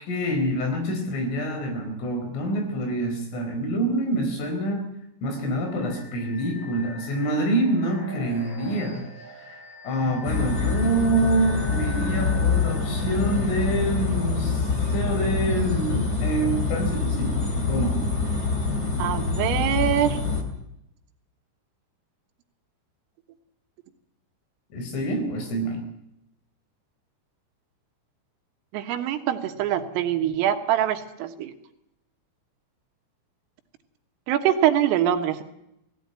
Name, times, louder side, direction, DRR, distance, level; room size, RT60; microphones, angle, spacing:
voice 1, 0.1-4.9 5.2-9.0 9.8-17.4 17.7-18.0 24.7-25.8, right 1 dB, 70° left, 5 dB, 6.6 m, -26 dB
sound 1, 5.5-16.3, left 1 dB, 55° left, 9.9 m, -43 dB
sound 2, 10.2-20.4, left 4 dB, 25° left, 2.5 m, -25 dB
voice 2, 19.0-20.2 28.7-31.6 34.3-35.4, right 11 dB, 80° right, 6 dB, 4.0 m, -24 dB
18.5 x 16.0 x 9.6 m, 0.81 s
omnidirectional pair, 6.0 m